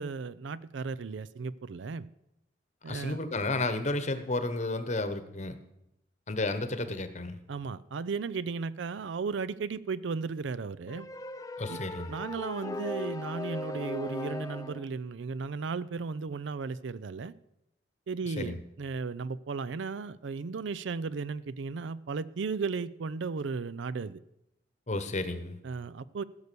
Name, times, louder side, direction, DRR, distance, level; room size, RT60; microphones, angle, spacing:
voice 1, 0.0-2.1 2.8-3.2 7.5-11.1 11.7-11.8 12.1-17.3 18.1-24.2 25.6-26.2, right 4 dB, 70° right, 0.4 m, -35 dB
voice 2, 2.9-5.5 6.3-7.4 11.6-12.1 18.3-18.6 24.9-25.6, left 2 dB, 35° left, 1.0 m, -32 dB
sound 1, 10.9-14.9, left 2 dB, 20° left, 0.4 m, -38 dB
15.0 x 6.7 x 6.8 m
head